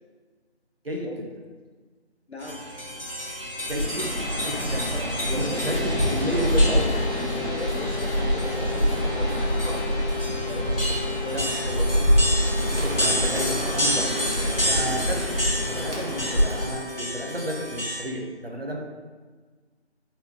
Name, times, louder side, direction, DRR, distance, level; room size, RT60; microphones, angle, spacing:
voice 1, 2.3-2.6 5.3-5.9 7.4-9.8 10.5-12.0, left 1 dB, 70° left, 2 dB, 0.6 m, -39 dB
sound 1, 2.4-18.0, equal, 55° left, 1.3 m, -31 dB
Bird, 3.6-16.8, equal, 80° right, 1.3 m, -26 dB
voice 2, 3.7-4.1 4.4-5.0 5.3-7.0 11.3-11.9 12.5-14.1 14.6-15.4 15.7-18.8, equal, 60° right, 0 dB, 0.7 m, -32 dB
sound 2, 5.5-17.7, left 6 dB, 40° right, 1.4 m, -35 dB
4.3 x 3.5 x 2.7 m, 1.4 s
figure-of-eight pair, 180°, 34 cm